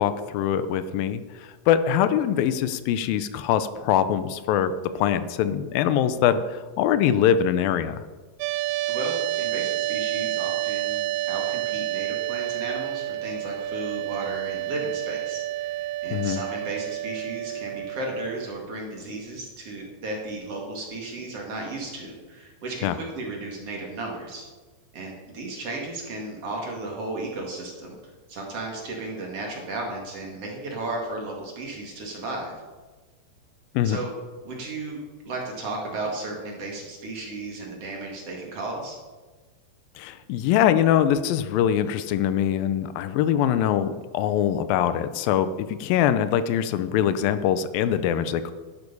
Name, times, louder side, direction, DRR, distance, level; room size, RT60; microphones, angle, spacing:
voice 1, 0.0-8.0 16.1-16.4 22.8-23.0 33.7-34.0 40.0-48.5, left 9 dB, 85° left, 12 dB, 2.5 m, -23 dB
sound 1, 8.4-18.5, right 15 dB, 80° right, 2.1 m, -29 dB
voice 2, 8.8-24.5 24.9-27.9 28.3-32.5 33.8-34.1 34.4-39.0, right 2 dB, 45° right, -1 dB, 2.9 m, -34 dB
12.0 x 11.0 x 5.4 m, 1.3 s
omnidirectional pair, 4.1 m